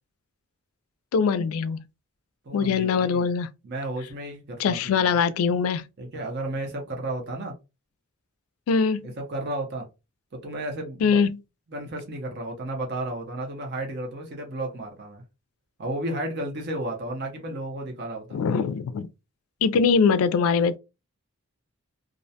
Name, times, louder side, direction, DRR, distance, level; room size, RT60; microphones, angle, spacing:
voice 1, 1.1-1.8 2.5-3.5 4.6-5.8 8.7-9.1 11.0-11.4 18.3-19.1 19.6-20.8, left 5 dB, 85° left, 0.3 m, -22 dB
voice 2, 2.5-3.3 3.6-5.1 6.0-7.5 9.2-9.9 10.3-11.2 11.7-15.2 15.8-18.4, right 1 dB, 55° right, 0.7 m, -33 dB
2.4 x 2.1 x 2.7 m
head